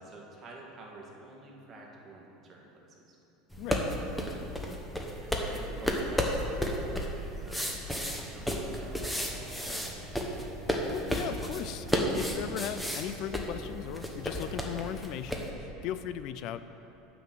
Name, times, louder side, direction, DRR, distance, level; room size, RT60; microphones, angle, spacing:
voice 1, 0.0-3.2 3.9-4.2 5.0-10.2, right 2 dB, 30° right, -2 dB, 1.8 m, -50 dB
sound 1, 3.5-15.5, equal, 5° left, 0.9 m, -33 dB
voice 2, 3.6-3.9 10.9-16.7, left 10 dB, 50° left, 12 dB, 0.3 m, -38 dB
sound 2, 8.4-14.9, right 1 dB, 65° right, 1.3 m, -50 dB
9.3 x 5.9 x 7.5 m, 2.9 s
supercardioid pair, 145°, 0 cm